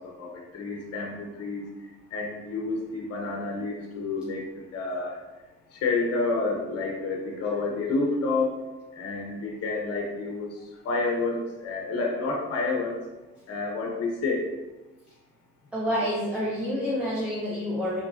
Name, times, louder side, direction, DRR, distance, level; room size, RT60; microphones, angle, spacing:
voice 1, 0.0-1.6 2.1-4.4 4.7-5.2 5.7-8.5 8.9-13.0 13.5-14.5, left 3 dB, 55° left, 0 dB, 0.7 m, -29 dB
voice 2, 15.7-18.0, equal, 5° right, -7 dB, 0.8 m, -28 dB
3.6 x 3.1 x 2.6 m, 1.1 s
cardioid pair, 90°, 30 cm